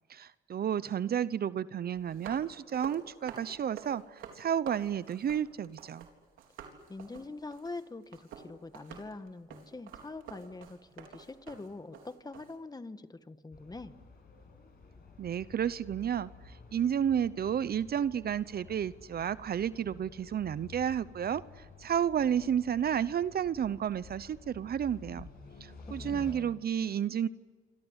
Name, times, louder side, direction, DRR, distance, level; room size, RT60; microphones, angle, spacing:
voice 1, 0.1-6.1 15.2-25.3 25.6-27.3, right 9 dB, 50° right, 17 dB, 0.8 m, -31 dB
sound 1, 1.9-6.1 6.4-12.5, right 7 dB, 85° right, 4.0 m, -49 dB
voice 2, 6.9-13.9 25.9-26.7, left 3 dB, 20° left, 11 dB, 1.5 m, -44 dB
sound 2, 13.5-26.3, left 4 dB, 50° left, 7.8 m, -51 dB
28.0 x 25.5 x 8.2 m, 1.4 s
cardioid pair, 90°, 20 cm